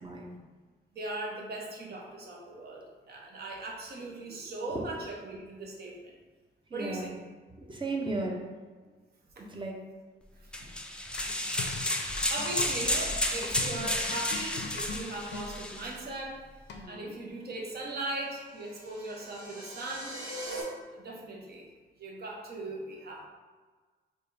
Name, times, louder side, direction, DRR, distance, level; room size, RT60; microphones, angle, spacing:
voice 1, 0.0-0.3 4.7-4.9 6.7-7.1 7.6-8.4 9.4-9.8 16.8-17.1, right 2 dB, 25° right, 0 dB, 0.7 m, -35 dB
voice 2, 0.9-6.1 6.7-7.1 9.4-9.5 10.4-10.7 12.0-16.4 16.9-20.1 20.9-21.7 22.0-23.3, right 2 dB, 55° right, -1 dB, 0.9 m, -39 dB
sound 1, 10.5-15.9, left 1 dB, 5° left, 0.3 m, -32 dB
sound 2, 11.2-15.5 16.7-17.1, left 4 dB, 65° left, 0.5 m, -41 dB
sound 3, 18.1-20.6, right 1 dB, 85° right, 1.0 m, -42 dB
3.4 x 2.3 x 4.1 m, 1.4 s
cardioid pair, 95°, 19 cm